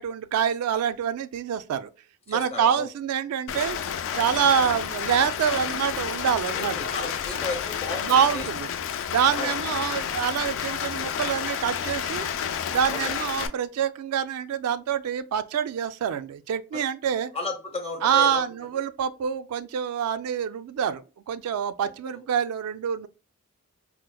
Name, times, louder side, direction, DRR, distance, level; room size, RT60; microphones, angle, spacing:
voice 1, 0.0-1.9 2.3-3.8 4.1-6.9 8.0-8.7 9.0-12.3 12.7-17.3 18.0-23.1, right 8 dB, 75° right, 0.3 m, -26 dB
voice 2, 2.3-2.9 6.5-8.4 9.3-9.5 12.9-13.1 17.3-18.4 21.8-22.2, left 3 dB, 25° left, 0.7 m, -34 dB
Rain, 3.5-13.5, left 8 dB, 60° left, 0.3 m, -30 dB
4.4 x 2.0 x 2.2 m
head